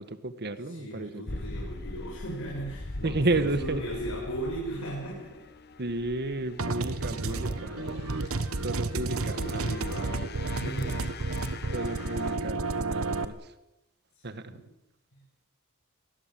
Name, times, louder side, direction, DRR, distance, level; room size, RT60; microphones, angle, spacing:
voice 1, 0.0-1.2 3.0-3.8 5.8-7.8 8.6-9.7 11.7-13.4 14.2-14.5, right 2 dB, 50° right, 11 dB, 1.7 m, -32 dB
voice 2, 0.6-5.4 7.0-8.3 9.0-11.1 11.4-11.6 14.2-14.7 15.1-15.2, right 1 dB, 70° left, -3 dB, 7.6 m, -38 dB
sound 1, 1.3-12.4, left 2 dB, 45° left, 1.2 m, -43 dB
sound 2, 6.6-13.2, right 3 dB, 70° right, 1.3 m, -31 dB
24.5 x 19.5 x 7.7 m, 0.92 s
head